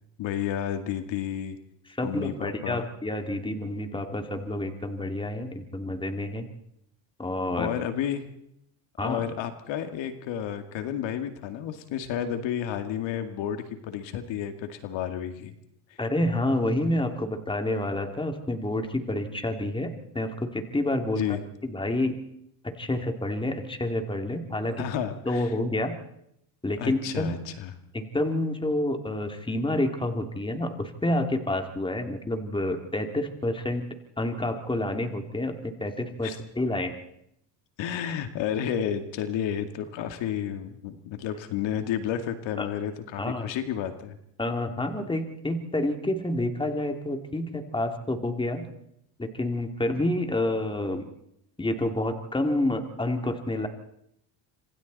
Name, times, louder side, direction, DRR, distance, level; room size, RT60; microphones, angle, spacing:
voice 1, 0.2-1.6 2.0-2.9 7.6-8.2 9.0-15.5 21.2-21.4 24.8-25.5 26.8-27.7 36.2-36.4 37.8-44.2, left 9 dB, 65° left, 7 dB, 2.3 m, -31 dB
voice 2, 2.0-6.5 7.2-7.7 9.0-9.2 16.0-21.2 21.6-22.2 22.6-24.8 25.2-26.0 26.6-27.3 27.9-33.8 34.2-36.3 36.6-36.9 42.6-42.7 43.2-43.5 44.4-48.7 49.2-51.1 51.6-53.7, left 1 dB, 10° left, 5 dB, 2.8 m, -28 dB
26.5 x 26.5 x 4.2 m, 0.76 s
supercardioid pair, 95°, 49 cm